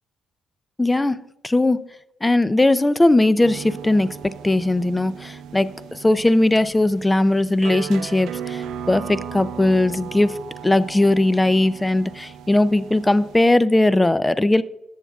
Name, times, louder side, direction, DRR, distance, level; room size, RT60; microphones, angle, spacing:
voice 1, 0.8-1.2 1.4-1.8 2.2-4.1 4.4-10.3 10.6-14.6, left 2 dB, 15° left, 15 dB, 0.5 m, -19 dB
sound 1, 3.4-13.5, right 8 dB, 80° right, 0.5 m, -37 dB
18.5 x 7.1 x 2.4 m, 0.92 s
cardioid pair, 90°, 0 cm